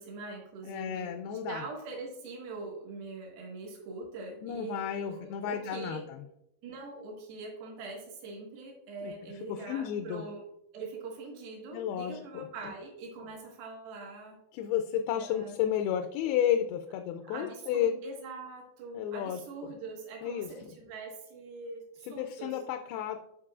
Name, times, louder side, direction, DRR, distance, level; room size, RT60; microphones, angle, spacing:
voice 1, 0.0-6.0 6.6-10.4 10.7-14.4 15.1-15.5 17.3-22.6, right 3 dB, 75° right, -1 dB, 3.4 m, -43 dB
voice 2, 0.6-1.6 4.4-6.2 9.0-9.1 9.5-10.2 11.7-12.7 14.5-18.0 18.9-19.7 20.2-20.7 22.0-23.2, left 9 dB, 85° left, 6 dB, 2.5 m, -32 dB
14.0 x 5.3 x 2.4 m, 0.81 s
omnidirectional pair, 4.4 m